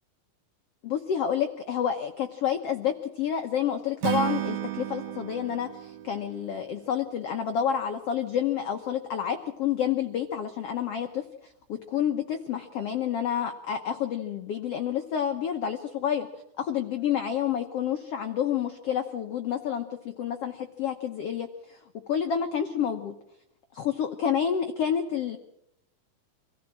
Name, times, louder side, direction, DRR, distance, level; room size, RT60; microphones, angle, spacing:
voice 1, 0.8-11.2 11.7-16.3 16.6-21.8 22.1-23.1 23.7-25.4, left 8 dB, 85° left, 6 dB, 1.3 m, -29 dB
Acoustic guitar / Strum, 4.0-7.3, right 14 dB, 75° right, 2.8 m, -33 dB
25.0 x 15.5 x 7.4 m, 0.79 s
omnidirectional pair, 4.3 m